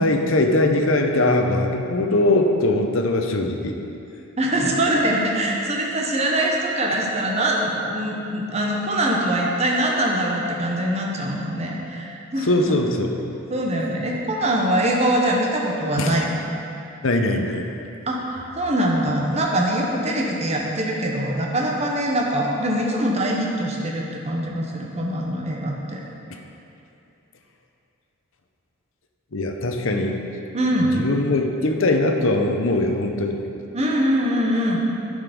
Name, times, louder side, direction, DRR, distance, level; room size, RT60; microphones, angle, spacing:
voice 1, 0.0-3.8 12.4-13.1 16.0-16.2 17.0-17.7 29.3-30.2 30.8-33.4, left 2 dB, 65° left, 4 dB, 0.8 m, -21 dB
voice 2, 4.4-12.5 13.5-16.4 18.1-26.0 30.5-30.9 33.7-34.8, right 1 dB, 30° right, -1 dB, 1.0 m, -23 dB
9.5 x 6.5 x 5.2 m, 2.7 s
head